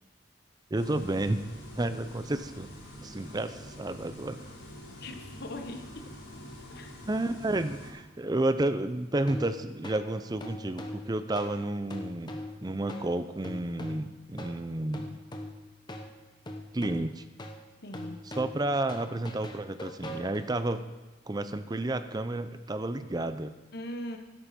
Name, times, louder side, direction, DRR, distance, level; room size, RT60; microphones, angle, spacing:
sound 1, 0.7-7.9, equal, 75° left, 4.1 m, -46 dB
voice 1, 0.7-1.4 1.8-2.7 3.0-4.4 7.1-15.2 16.7-17.2 18.4-20.8 21.3-23.5, right 2 dB, 20° right, 11 dB, 0.5 m, -31 dB
voice 2, 5.0-6.0 6.7-6.9 17.8-18.2 23.7-24.2, left 1 dB, 55° left, 4 dB, 1.2 m, -40 dB
sound 2, 9.2-20.7, left 1 dB, 25° left, 1.0 m, -42 dB
12.5 x 11.0 x 4.3 m, 1.1 s
head